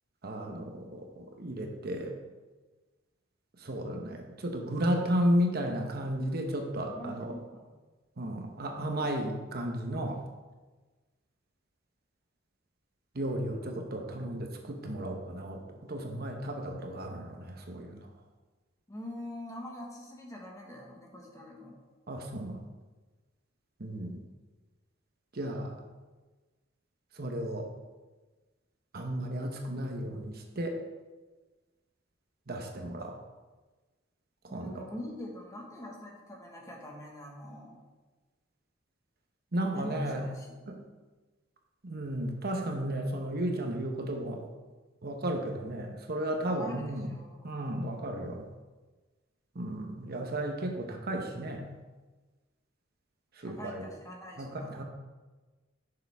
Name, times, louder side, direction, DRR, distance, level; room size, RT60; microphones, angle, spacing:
voice 1, 0.2-2.2 3.6-7.3 8.2-10.2 13.1-18.1 22.1-22.6 23.8-24.2 25.3-25.7 27.2-27.7 28.9-30.8 32.5-33.2 34.4-34.8 39.5-40.2 40.7-40.8 41.8-44.4 45.0-47.1 47.4-48.4 49.5-51.7 53.4-53.8 54.4-54.8, right 1 dB, 55° right, 3 dB, 1.1 m, -33 dB
voice 2, 6.8-7.7 18.9-21.8 34.5-37.8 39.7-40.9 46.5-47.5 53.4-54.8, left 1 dB, 15° left, -1 dB, 1.6 m, -44 dB
10.5 x 6.9 x 3.6 m, 1.3 s
head